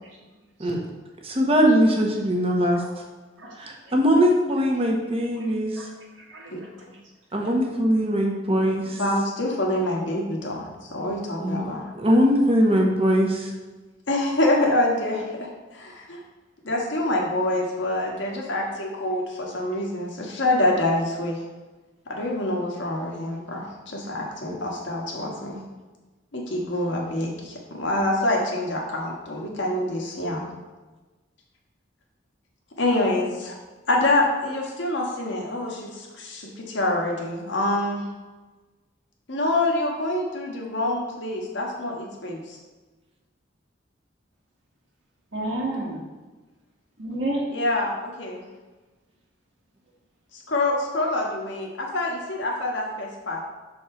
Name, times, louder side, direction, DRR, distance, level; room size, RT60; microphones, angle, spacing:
voice 1, 1.2-2.8 3.6-5.8 7.3-9.0 11.4-11.6 12.0-13.5, equal, 30° right, 0 dB, 1.1 m, -21 dB
voice 2, 8.8-11.9 14.1-16.2 16.6-21.4 22.1-25.6 26.3-30.4 32.8-33.5 33.9-38.1 39.3-42.6 47.5-48.4 50.3-53.4, left 1 dB, 80° left, -1 dB, 1.4 m, -26 dB
voice 3, 45.3-46.0 47.0-47.4, right 1 dB, 85° right, -5 dB, 1.5 m, -30 dB
6.5 x 4.3 x 4.4 m, 1.2 s
head